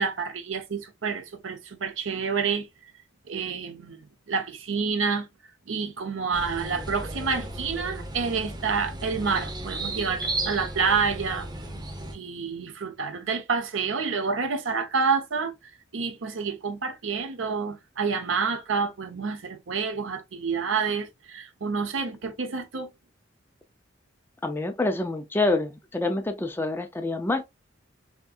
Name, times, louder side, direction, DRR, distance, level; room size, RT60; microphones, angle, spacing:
voice 1, 0.0-2.7 3.3-4.0 4.3-5.3 5.7-11.5 12.1-15.5 15.9-22.9, right 5 dB, 75° right, 0.7 m, -28 dB
sound 1, 6.3-12.1, right 2 dB, 20° right, 0.7 m, -34 dB
voice 2, 24.4-27.4, left 2 dB, 10° left, 0.3 m, -27 dB
3.5 x 2.6 x 2.3 m
head